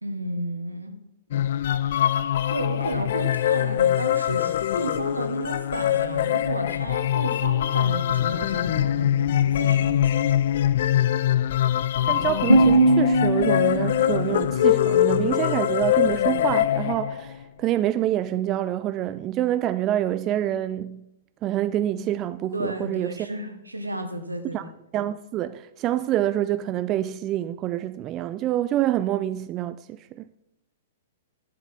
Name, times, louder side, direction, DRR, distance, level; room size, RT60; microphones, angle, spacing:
voice 1, 0.0-1.0 2.5-10.4 22.5-24.7, right 1 dB, 85° right, 1.2 m, -32 dB
sound 1, 1.3-17.4, left 11 dB, 55° left, 0.3 m, -23 dB
voice 2, 12.1-21.0 21.4-23.3 24.5-24.6 24.9-30.3, right 12 dB, 30° right, 0.3 m, -26 dB
sound 2, 12.5-15.5, right 1 dB, 85° left, 1.5 m, -22 dB
11.0 x 7.5 x 4.1 m
figure-of-eight pair, 110°, 0 cm